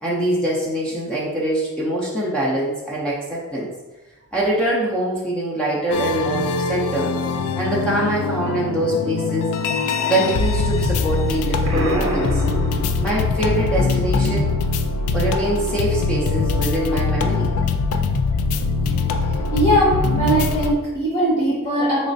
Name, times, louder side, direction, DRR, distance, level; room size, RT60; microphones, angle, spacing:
voice 1, 0.0-3.7 4.3-7.1 7.6-9.5 10.1-12.4 13.0-14.5 15.1-17.5, right 1 dB, 5° left, -6 dB, 0.5 m, -23 dB
sound 1, 5.9-20.7, left 4 dB, 80° left, 0.3 m, -22 dB
Explosion, 11.6-13.5, equal, 60° right, 0.7 m, -27 dB
voice 2, 19.5-22.1, right 1 dB, 30° left, -10 dB, 1.3 m, -20 dB
4.1 x 3.1 x 2.6 m, 1.1 s
head